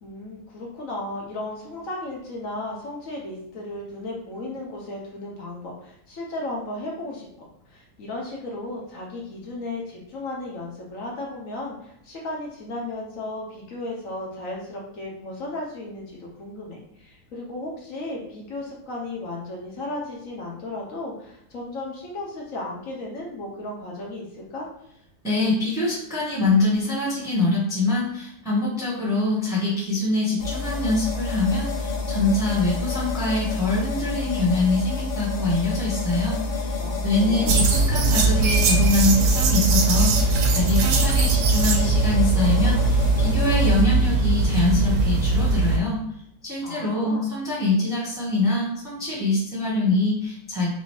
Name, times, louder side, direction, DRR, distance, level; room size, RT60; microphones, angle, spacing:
voice 1, 0.0-7.3 7.7-24.7 36.8-37.6 46.6-47.3, left 2 dB, 55° left, -2 dB, 1.2 m, -35 dB
voice 2, 25.2-36.8 37.0-46.0 46.4-50.7, left 2 dB, ahead, -7 dB, 1.0 m, -24 dB
sound 1, 30.4-43.8, left 3 dB, 75° left, 0.5 m, -29 dB
sound 2, 37.5-45.8, right 3 dB, 85° right, 1.2 m, -20 dB
4.2 x 2.7 x 3.1 m, 0.73 s
omnidirectional pair, 1.8 m